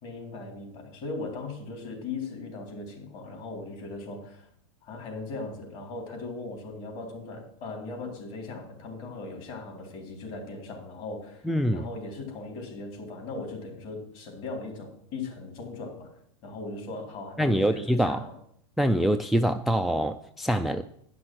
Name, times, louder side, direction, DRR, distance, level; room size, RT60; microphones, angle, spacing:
voice 1, 0.0-4.5 4.8-16.1 16.4-18.3, left 3 dB, 50° left, 1 dB, 3.6 m, -38 dB
voice 2, 11.5-11.9 17.4-18.2 18.8-20.8, equal, ahead, 9 dB, 0.3 m, -24 dB
10.0 x 6.1 x 6.1 m, 0.68 s
supercardioid pair, 125°, 16 cm